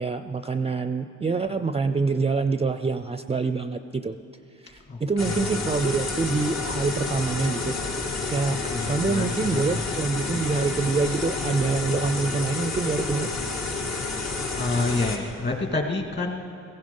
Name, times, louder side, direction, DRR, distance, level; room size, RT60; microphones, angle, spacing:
voice 1, 0.0-4.2 4.6-7.8 8.3-8.6 8.9-13.3, right 4 dB, 20° right, 10 dB, 0.5 m, -26 dB
voice 2, 4.9-5.9 8.4-10.0 14.5-16.4, left 3 dB, 35° left, 3 dB, 2.3 m, -29 dB
sound 1, 5.2-15.2, left 3 dB, 60° left, 2.0 m, -30 dB
17.0 x 15.5 x 5.5 m, 2.5 s
cardioid pair, 90°, 30 cm